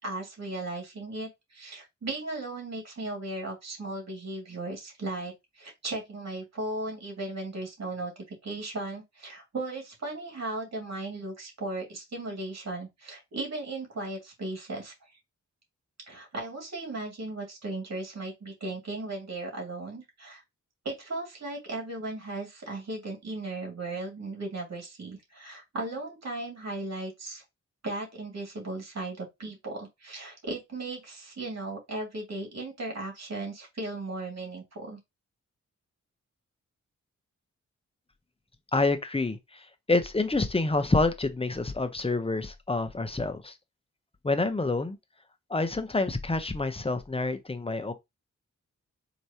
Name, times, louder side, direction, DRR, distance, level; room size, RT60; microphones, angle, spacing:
voice 1, 0.0-15.1 16.1-20.4 20.8-27.4 27.8-35.0, right 2 dB, 55° right, 2.3 m, -36 dB
voice 2, 38.7-39.6 39.9-43.5 44.2-45.0 45.5-47.9, left 3 dB, 20° left, 0.8 m, -27 dB
4.6 x 3.0 x 2.8 m
cardioid pair, 60°, 31 cm